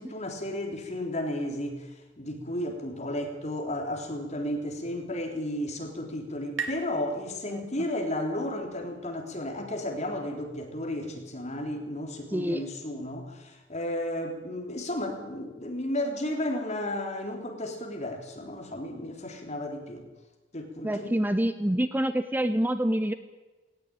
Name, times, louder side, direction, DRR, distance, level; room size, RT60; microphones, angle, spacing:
voice 1, 0.0-1.9 2.2-20.0 20.5-21.1, left 1 dB, 40° left, 3 dB, 3.7 m, -33 dB
sound 1, 5.1-8.5, right 5 dB, 75° right, 3.1 m, -42 dB
voice 2, 12.3-12.6 20.8-23.1, right 1 dB, 10° right, 10 dB, 0.9 m, -27 dB
19.0 x 18.5 x 9.0 m, 1.2 s
head